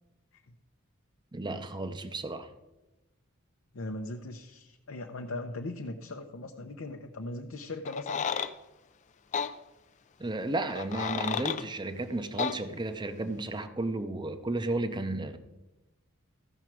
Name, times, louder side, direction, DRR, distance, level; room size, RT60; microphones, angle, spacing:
voice 1, 1.3-2.5 10.2-15.4, right 2 dB, 20° right, 9 dB, 0.6 m, -33 dB
voice 2, 3.7-8.3, left 2 dB, 70° left, 3 dB, 0.7 m, -39 dB
sound 1, 7.9-8.5 9.3-9.5 10.7-11.6 12.4-12.6, left 7 dB, 35° left, 0.4 m, -31 dB
14.5 x 6.1 x 4.6 m, 1.0 s
head